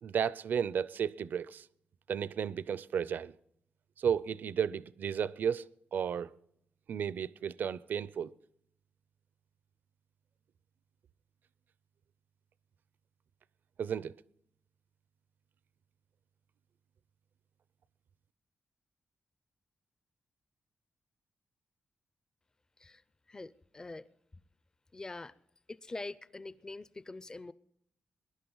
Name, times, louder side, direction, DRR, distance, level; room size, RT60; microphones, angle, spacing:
voice 1, 0.0-1.7 2.1-3.3 4.0-6.3 6.9-8.3 13.8-14.1, right 7 dB, 65° right, 0.5 m, -33 dB
voice 2, 23.3-24.1 24.9-25.4 25.7-27.5, left 2 dB, 20° left, 0.4 m, -44 dB
21.0 x 11.0 x 3.9 m
wide cardioid pair, 145°, 3 cm